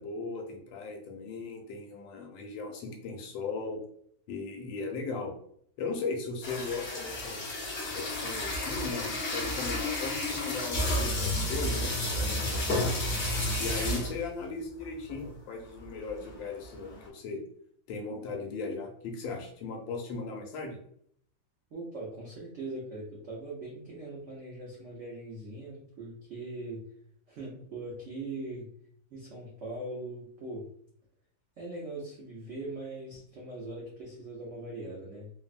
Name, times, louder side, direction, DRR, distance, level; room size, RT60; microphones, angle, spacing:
voice 1, 0.0-3.8 4.3-5.3 5.8-7.6 7.9-13.0 13.6-17.4 17.9-20.8, left 4 dB, 80° left, 2 dB, 1.3 m, -37 dB
sound 1, 6.4-14.3 14.8-14.9 15.1-15.3 15.8-17.1, left 1 dB, 60° left, 0.6 m, -31 dB
voice 2, 21.7-26.8 27.3-28.7 29.1-30.7 31.6-35.3, right 2 dB, 90° right, -4 dB, 0.6 m, -41 dB
3.3 x 2.0 x 2.4 m, 0.65 s
omnidirectional pair, 2.1 m